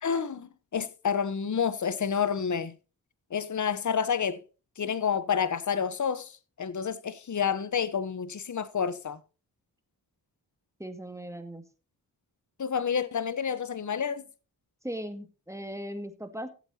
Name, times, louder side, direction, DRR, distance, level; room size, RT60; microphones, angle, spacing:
voice 1, 0.0-2.7 3.3-4.4 4.8-6.3 6.6-9.2 12.6-14.2, left 7 dB, 45° left, 1.0 m, -29 dB
voice 2, 10.8-11.6 14.8-16.5, equal, 5° right, 2.1 m, -38 dB
16.5 x 8.1 x 2.8 m
cardioid pair, 45°, 41 cm